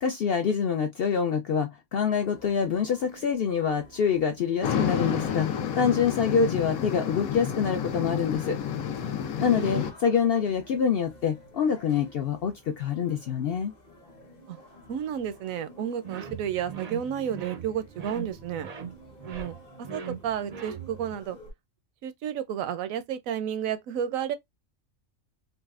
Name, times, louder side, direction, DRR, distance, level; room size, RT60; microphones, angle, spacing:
voice 1, 0.0-5.5 5.8-8.6 9.4-13.7, left 7 dB, 65° left, 0.6 m, -26 dB
sound 1, 2.2-21.5, left 1 dB, 35° left, 0.9 m, -51 dB
sound 2, 4.6-9.9, left 8 dB, 85° left, 1.1 m, -30 dB
voice 2, 9.4-9.9 14.5-14.6 14.9-18.7 19.3-19.6 19.9-21.4 22.0-24.4, right 9 dB, 80° right, 1.0 m, -32 dB
sound 3, 16.0-21.2, right 6 dB, 60° right, 0.4 m, -40 dB
4.0 x 2.2 x 2.3 m
omnidirectional pair, 1.4 m